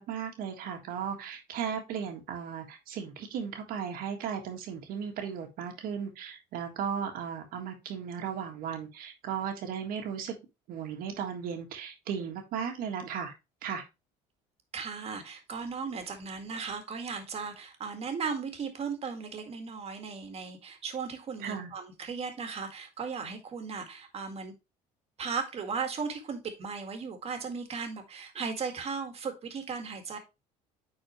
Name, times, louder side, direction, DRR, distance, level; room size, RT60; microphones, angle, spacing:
voice 1, 0.0-10.3 10.7-13.3 13.6-13.8 21.4-21.7, right 7 dB, 65° right, 1.7 m, -36 dB
voice 2, 14.7-24.5 25.2-30.2, right 5 dB, 40° right, 1.9 m, -36 dB
9.2 x 4.4 x 3.1 m
cardioid pair, 110°, 16 cm